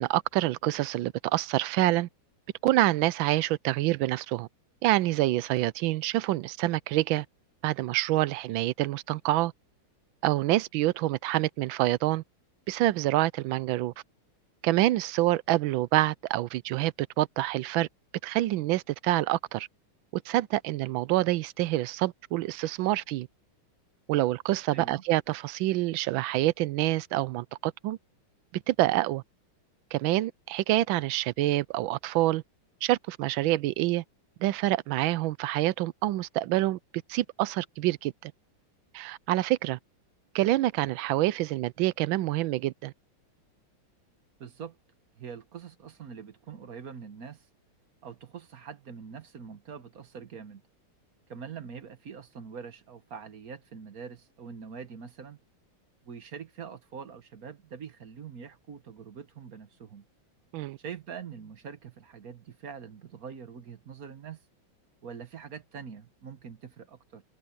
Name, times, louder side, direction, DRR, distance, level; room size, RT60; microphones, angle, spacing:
voice 1, 0.0-2.1 2.6-4.5 4.8-7.3 7.6-9.5 10.2-12.2 12.7-13.9 14.6-17.9 18.2-19.7 20.1-23.3 24.1-28.0 28.5-29.2 29.9-32.4 32.8-34.0 34.4-36.8 37.1-38.3 38.9-39.8 40.3-42.9 60.5-60.8, right 16 dB, 75° right, 1.3 m, -27 dB
voice 2, 24.7-25.0 44.4-44.8 45.2-47.5 48.0-50.6 51.3-55.4 56.0-60.0 60.8-64.4 65.0-67.2, right 6 dB, 50° right, 1.5 m, -44 dB
omnidirectional pair, 2.3 m